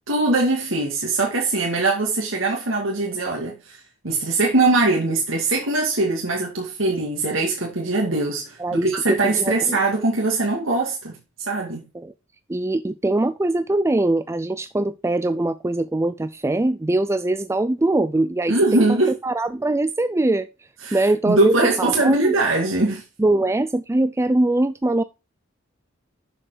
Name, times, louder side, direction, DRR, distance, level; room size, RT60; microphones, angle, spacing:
voice 1, 0.1-11.2 11.5-11.8 18.5-19.1 20.8-23.0, right 2 dB, 85° right, 2.3 m, -21 dB
voice 2, 8.6-9.8 11.9-12.1 12.5-20.5 20.9-22.3 23.2-25.0, right 2 dB, 15° right, 0.4 m, -22 dB
7.3 x 6.9 x 5.0 m
head